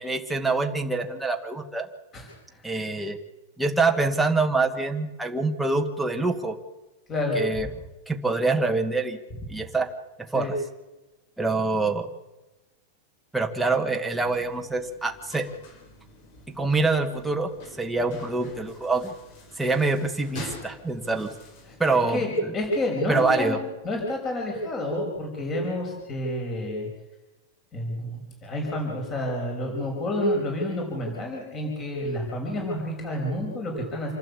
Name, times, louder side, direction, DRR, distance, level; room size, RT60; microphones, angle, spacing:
voice 1, 0.0-1.9 2.6-3.2 3.6-6.6 7.4-7.7 8.1-9.2 9.5-9.9 10.3-10.5 11.4-12.1 13.3-15.5 16.5-17.5 17.8-19.1 19.6-21.3 21.8-22.5 23.1-23.6, right 3 dB, 5° right, 3 dB, 1.6 m, -25 dB
voice 2, 7.1-7.7 10.3-10.5 21.7-23.6 23.8-26.9 27.7-34.1, left 1 dB, 20° left, 1 dB, 5.7 m, -29 dB
sound 1, 14.2-22.1, left 2 dB, 40° left, 6.4 m, -46 dB
27.5 x 12.0 x 8.4 m, 1.1 s
supercardioid pair, 165°, 0 cm